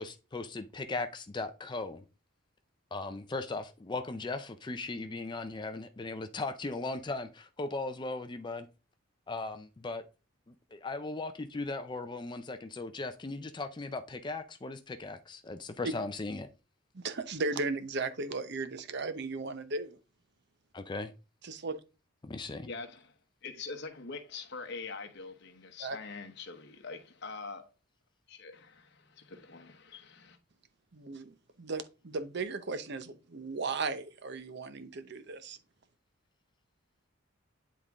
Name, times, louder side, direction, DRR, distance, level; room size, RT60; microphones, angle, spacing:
voice 1, 0.0-2.0 2.9-8.7 9.3-10.0 10.7-16.5 20.7-21.1 22.2-22.7, left 3 dB, 25° left, 0.4 m, -38 dB
voice 2, 16.9-20.0 21.4-21.8 25.8-26.0 30.9-35.6, right 3 dB, 60° right, 0.8 m, -36 dB
voice 3, 22.6-23.1 23.4-27.7 28.3-30.4, left 4 dB, 60° left, 1.1 m, -44 dB
10.0 x 3.7 x 3.6 m
head